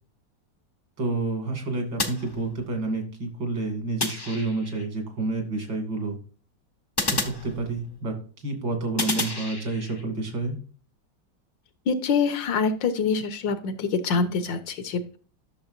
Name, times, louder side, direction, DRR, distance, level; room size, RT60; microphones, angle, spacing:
voice 1, 1.0-6.2 7.0-10.6, right 3 dB, 70° right, 3 dB, 3.1 m, -29 dB
sound 1, 2.0-2.9 4.0-4.9 7.0-8.1 9.0-10.0, left 2 dB, 30° left, 0.4 m, -31 dB
voice 2, 11.9-15.2, left 5 dB, 75° left, 10 dB, 1.7 m, -25 dB
12.0 x 6.6 x 2.6 m, 0.40 s
omnidirectional pair, 2.0 m